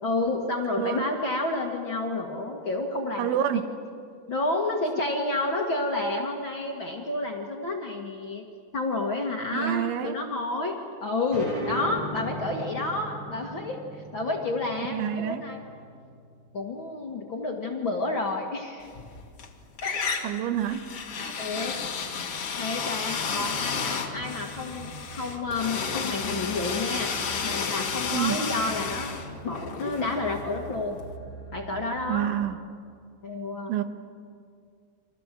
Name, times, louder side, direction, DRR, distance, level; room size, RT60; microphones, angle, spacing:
voice 1, 0.0-3.5 4.3-8.4 8.7-15.6 16.5-18.9 19.8-20.0 21.4-21.8 22.6-27.1 27.4-29.1 29.4-31.0 31.5-32.3 33.2-33.7, left 2 dB, 70° left, 0 dB, 1.1 m, -30 dB
voice 2, 3.2-3.6 9.5-10.2 14.9-15.4 20.2-20.8 21.1-21.4 23.3-23.5 28.1-28.5 32.1-32.6 33.7-33.8, right 10 dB, 90° right, 10 dB, 3.6 m, -28 dB
sound 1, 11.3-16.5, equal, 60° right, 8.9 m, -38 dB
sound 2, 18.9-19.5 19.8-30.7, left 6 dB, 45° left, 1.9 m, -32 dB
sound 3, 23.4-32.4, right 2 dB, 30° right, 7.5 m, -44 dB
30.0 x 25.5 x 7.6 m, 2.3 s
omnidirectional pair, 5.4 m